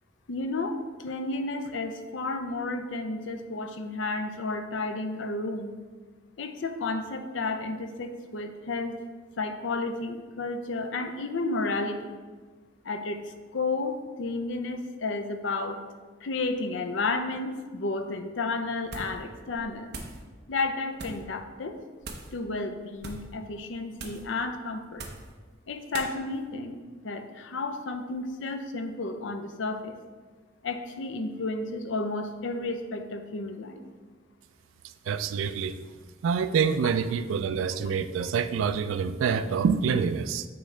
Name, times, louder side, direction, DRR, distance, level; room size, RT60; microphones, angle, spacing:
voice 1, 0.3-5.7 6.4-9.0 9.4-12.1 12.8-13.2 13.5-15.8 16.2-19.9 20.5-21.8 22.3-25.1 25.7-29.9 30.6-33.8 36.8-36.9, left 3 dB, 70° left, 7 dB, 0.5 m, -32 dB
sound 1, 18.8-19.2 19.5-20.2 20.9-21.3 22.0-22.4 22.9-23.3 24.0-24.3 24.9-25.3 25.9-26.1, right 3 dB, 55° right, 0.8 m, -40 dB
voice 2, 35.1-35.8 36.2-40.5, right 6 dB, 80° right, 11 dB, 0.3 m, -26 dB
8.7 x 3.7 x 3.2 m, 1.4 s
head